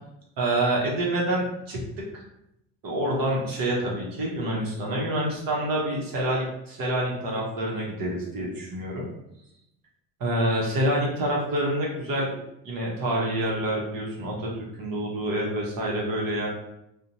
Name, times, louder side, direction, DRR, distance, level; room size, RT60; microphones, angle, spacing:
voice 1, 0.4-1.8 2.1-2.2 2.8-9.1 10.2-12.3 12.6-14.5 14.8-16.5, right 1 dB, 50° right, -3 dB, 0.9 m, -27 dB
2.5 x 2.1 x 2.8 m, 0.84 s
hypercardioid pair, 70°, 45 cm